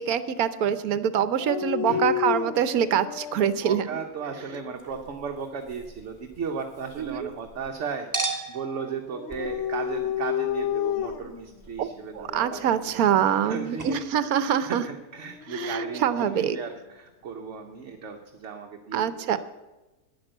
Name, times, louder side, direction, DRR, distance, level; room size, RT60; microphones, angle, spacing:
voice 1, 0.0-3.9 7.0-7.3 11.8-11.9 12.1-14.8 15.5-16.6 18.9-19.4, right 9 dB, 75° right, 14 dB, 1.2 m, -25 dB
Dog, 1.4-3.6 4.2-5.0 9.1-11.4 12.2-12.7 15.2-16.5, left 10 dB, 65° left, 0.9 m, -31 dB
voice 2, 1.9-2.2 3.6-19.4, right 6 dB, 55° right, 3 dB, 1.2 m, -36 dB
Chink clink, 4.8-7.7 8.1-13.5 13.8-13.9, right 3 dB, 10° right, 1.9 m, -39 dB
10.5 x 10.0 x 7.8 m, 1.1 s
omnidirectional pair, 1.5 m